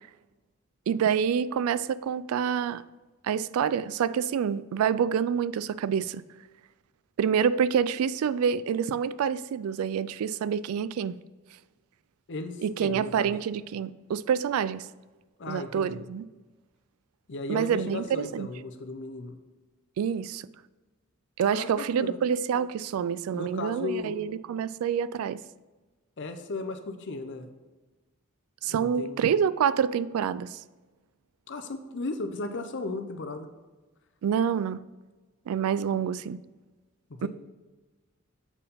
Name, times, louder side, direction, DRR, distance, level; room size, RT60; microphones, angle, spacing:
voice 1, 0.9-2.8 3.2-6.2 7.2-11.2 12.6-14.9 15.5-16.2 17.5-18.5 20.0-20.5 21.4-25.4 28.6-30.6 34.2-34.8 35.5-36.4 37.2-37.3, right 7 dB, 85° right, 0.3 m, -27 dB
voice 2, 12.3-13.3 15.4-16.1 17.3-19.4 21.5-22.2 23.3-24.3 26.2-27.5 28.7-29.2 31.5-33.5 37.1-37.3, left 3 dB, 60° left, 0.7 m, -36 dB
7.1 x 4.6 x 5.3 m
head